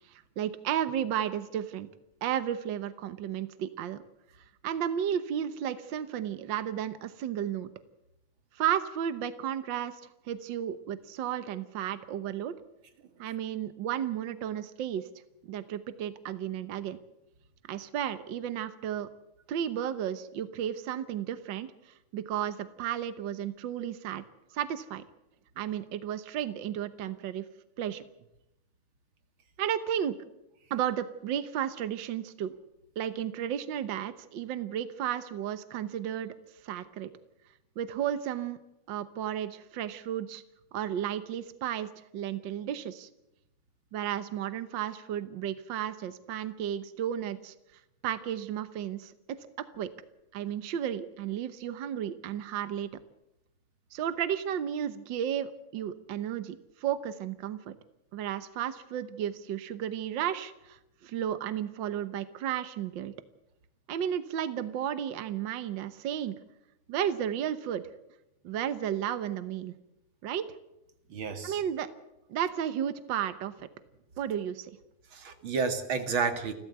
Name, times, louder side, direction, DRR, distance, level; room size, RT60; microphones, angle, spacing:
voice 1, 0.1-1.9 2.2-4.0 4.6-7.7 8.5-10.0 10.3-12.5 13.2-15.1 15.5-17.0 17.7-19.1 19.5-21.7 22.1-24.2 24.5-25.0 25.6-27.4 27.8-28.0 29.6-30.1 30.7-32.5 33.0-36.3 36.6-37.1 37.8-38.6 38.9-40.4 40.7-43.1 43.9-47.5 48.0-49.1 49.7-49.9 50.3-52.9 53.9-57.7 58.1-63.1 63.9-66.3 66.9-67.8 68.4-69.7 70.2-70.4 71.4-71.9 72.3-73.5 74.2-74.7, right 10 dB, 65° right, 12 dB, 1.1 m, -33 dB
voice 2, 71.1-71.6 75.1-76.5, right 5 dB, 45° right, 7 dB, 2.5 m, -31 dB
29.0 x 13.0 x 8.0 m, 0.86 s
omnidirectional pair, 3.3 m